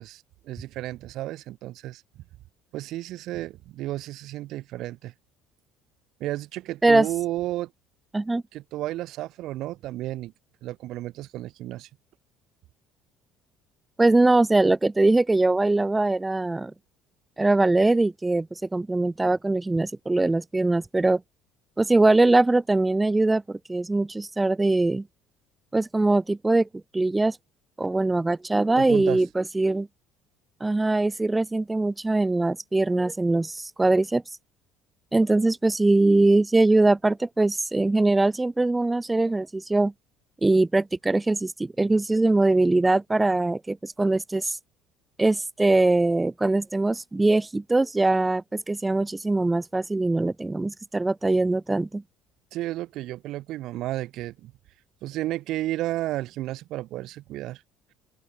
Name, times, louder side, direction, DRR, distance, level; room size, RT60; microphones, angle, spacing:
voice 1, 0.0-2.0 2.7-5.1 6.2-7.7 8.5-10.3 10.6-11.9 28.8-29.2 52.5-54.5 55.0-57.6, right 15 dB, 60° right, 1.8 m, -32 dB
voice 2, 14.0-16.7 17.4-21.2 21.8-25.1 25.7-26.7 26.9-27.4 27.8-29.9 30.6-34.2 35.1-39.9 40.4-44.6 45.2-52.0, right 2 dB, 15° right, 1.4 m, -22 dB
open air
hypercardioid pair, 60°, 0 cm